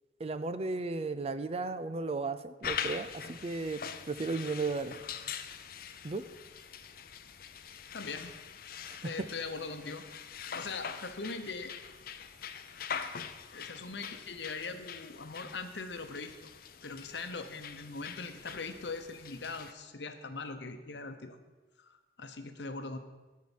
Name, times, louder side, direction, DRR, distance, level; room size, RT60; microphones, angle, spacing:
voice 1, 0.2-3.8 4.1-4.9 6.0-6.2, right 3 dB, 35° right, 12 dB, 0.5 m, -34 dB
sound 1, 2.6-19.7, left 7 dB, 55° left, 0.6 m, -43 dB
voice 2, 7.9-8.3 9.0-10.0 10.5-11.7 13.5-16.3 16.8-21.4 21.8-23.0, left 4 dB, 80° left, 8 dB, 0.9 m, -41 dB
13.5 x 4.7 x 7.2 m, 1.2 s
head